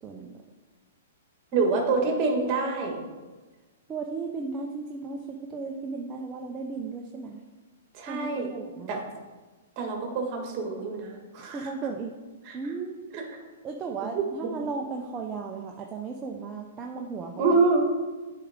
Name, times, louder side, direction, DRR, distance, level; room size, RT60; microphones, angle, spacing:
voice 1, 0.0-0.4 3.9-7.4 8.1-9.0 11.4-12.1 12.5-13.1 13.6-17.6, right 4 dB, 20° right, 1 dB, 0.6 m, -35 dB
voice 2, 1.5-3.0 7.9-8.5 8.9-9.0 9.8-11.7 12.5-12.6 13.1-13.4 14.1-14.2 17.4-17.9, right 3 dB, 35° right, 2 dB, 1.7 m, -26 dB
8.4 x 4.8 x 3.6 m, 1.3 s
hypercardioid pair, 130°, 0 cm